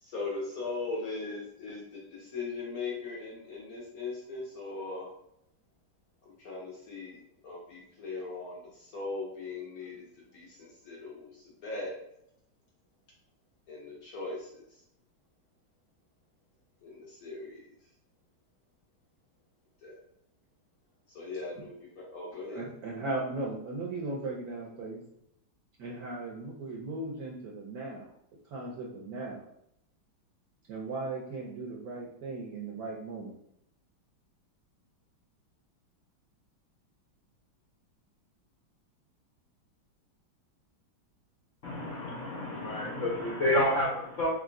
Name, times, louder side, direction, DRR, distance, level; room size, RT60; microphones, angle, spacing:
voice 1, 0.0-5.1 6.2-10.1 10.3-11.9 13.7-14.6 16.8-17.6 19.8-20.0 21.1-22.7, left 3 dB, 60° left, -3 dB, 1.0 m, -39 dB
voice 2, 22.5-25.0 25.8-28.1 28.5-29.5 30.7-33.4, right 2 dB, 65° right, -3 dB, 0.9 m, -37 dB
voice 3, 41.6-44.3, left 1 dB, 90° left, -5 dB, 0.6 m, -29 dB
3.6 x 3.4 x 2.5 m, 0.76 s
omnidirectional pair, 2.2 m